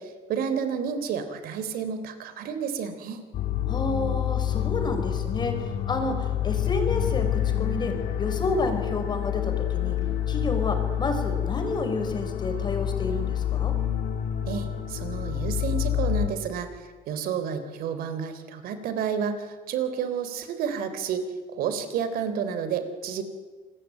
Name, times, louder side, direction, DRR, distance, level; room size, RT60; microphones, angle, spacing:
voice 1, 0.0-3.2 14.5-21.2 21.5-23.2, right 7 dB, 70° right, 10 dB, 3.5 m, -30 dB
sound 1, 3.3-16.3, left 10 dB, 65° left, 2.8 m, -28 dB
voice 2, 3.7-10.0 10.3-13.7, left 3 dB, 30° left, 5 dB, 5.2 m, -30 dB
27.5 x 21.0 x 9.3 m, 1.4 s
cardioid pair, 140°, 16 cm